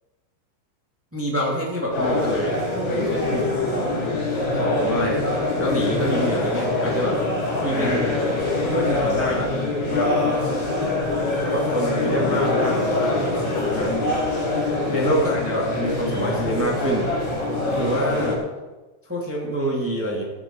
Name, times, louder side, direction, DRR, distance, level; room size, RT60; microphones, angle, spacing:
voice 1, 1.1-2.6 2.9-3.5 4.5-5.3 5.6-7.2 7.6-8.1 8.6-9.5 9.9-10.1 11.4-13.4 13.7-14.0 14.8-17.1 17.7-18.4 19.1-20.2, equal, 5° right, -3 dB, 1.0 m, -26 dB
sound 1, 1.9-18.4, left 2 dB, 70° left, 6.2 m, -24 dB
17.5 x 9.2 x 4.7 m, 1.2 s
omnidirectional pair, 5.4 m